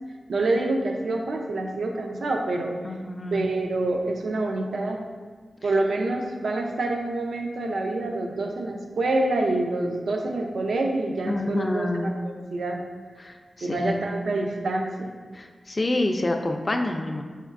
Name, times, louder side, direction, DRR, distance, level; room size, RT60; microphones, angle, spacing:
voice 1, 0.3-2.7 3.3-5.0 5.6-12.9 13.6-15.1, right 2 dB, 80° right, 2 dB, 0.4 m, -27 dB
voice 2, 2.8-3.4 11.3-12.1 13.2-13.9 15.3-17.2, left 2 dB, 30° left, 3 dB, 0.3 m, -27 dB
4.4 x 4.2 x 2.4 m, 1.5 s
wide cardioid pair, 110°, 0 cm